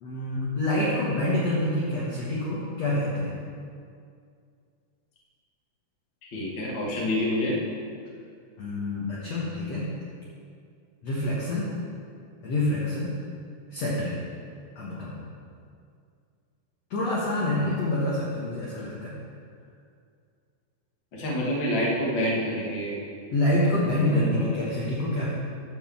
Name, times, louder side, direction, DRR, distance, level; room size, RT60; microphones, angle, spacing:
voice 1, 0.0-3.4 8.6-9.9 11.0-11.7 12.4-13.2 13.7-14.2 14.8-15.2 16.9-19.1 23.3-25.3, left 1 dB, 60° left, -6 dB, 1.9 m, -27 dB
voice 2, 6.2-7.6 17.6-17.8 21.1-23.1 23.9-24.5, left 1 dB, 40° left, -5 dB, 1.8 m, -28 dB
12.0 x 4.7 x 7.3 m, 2.3 s
omnidirectional pair, 4.8 m